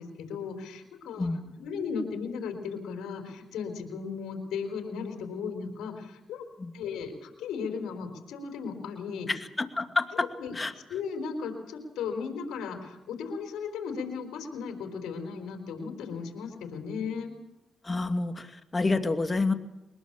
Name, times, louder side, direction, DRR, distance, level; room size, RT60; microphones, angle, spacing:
voice 1, 0.0-1.3 1.6-6.4 6.7-9.3 10.4-10.5 10.9-17.3, left 5 dB, 90° left, 5 dB, 4.0 m, -36 dB
voice 2, 9.3-10.3 10.5-10.7 17.8-19.5, left 3 dB, 30° left, 7 dB, 2.4 m, -28 dB
23.0 x 20.5 x 7.3 m, 1.0 s
cardioid pair, 60°, 0 cm